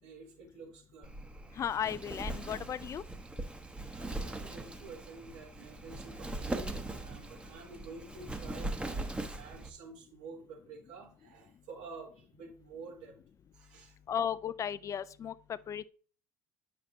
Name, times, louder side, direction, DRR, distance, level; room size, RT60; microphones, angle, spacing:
voice 1, 0.0-1.1 3.9-13.2 13.5-14.0, right 4 dB, 70° right, 3.9 m, -50 dB
Wind, 1.0-9.7, right 2 dB, 10° right, 1.0 m, -40 dB
voice 2, 1.6-3.0 14.1-15.9, left 8 dB, 40° left, 0.4 m, -35 dB
9.0 x 6.5 x 2.7 m
hypercardioid pair, 70°, 9 cm